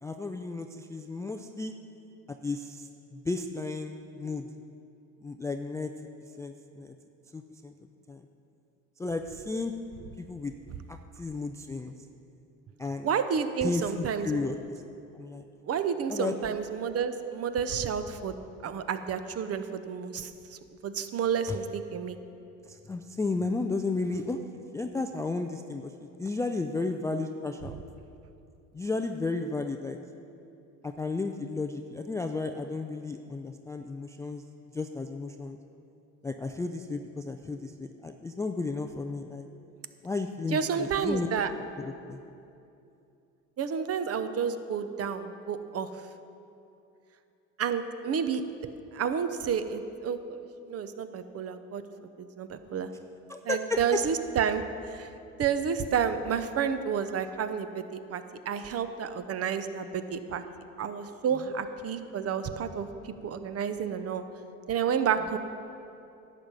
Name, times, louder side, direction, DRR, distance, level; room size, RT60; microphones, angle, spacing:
voice 1, 0.0-1.7 2.4-4.5 5.2-5.9 6.4-6.9 7.3-7.7 8.1-8.2 9.0-9.7 10.2-10.5 10.9-11.9 12.8-13.1 13.6-14.6 15.1-15.4 16.1-16.3 21.5-21.6 22.7-24.4 24.7-25.9 26.2-27.8 28.7-30.0 30.8-34.4 34.7-35.6 36.2-39.5 40.0-41.3 41.8-42.2 53.3-54.0, left 3 dB, 10° left, 6 dB, 0.3 m, -33 dB
voice 2, 13.0-14.4 15.6-18.3 18.6-20.3 20.8-22.2 40.5-41.5 43.6-45.9 47.6-48.4 48.9-50.2 50.7-51.8 52.2-52.9 53.4-54.6 54.9-55.1 55.4-60.4 60.8-62.9 63.2-64.2 64.7-65.4, right 7 dB, 35° right, 10 dB, 0.8 m, -30 dB
11.0 x 7.5 x 5.4 m, 2.7 s
hypercardioid pair, 75°, 40 cm